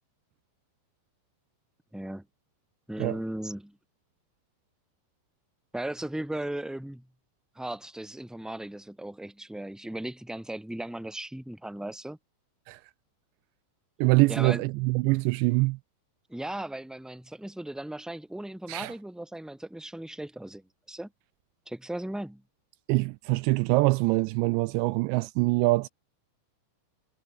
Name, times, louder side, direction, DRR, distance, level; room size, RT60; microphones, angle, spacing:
voice 1, 1.9-2.2 2.9-3.8 5.7-7.1 7.5-12.2 14.3-14.6 16.3-20.6 20.9-21.1 21.6-22.4, right 1 dB, ahead, 4.9 m, -37 dB
voice 2, 14.0-15.8 18.7-18.9 22.9-25.9, right 23 dB, 85° right, 2.6 m, -24 dB
omnidirectional pair, 5.4 m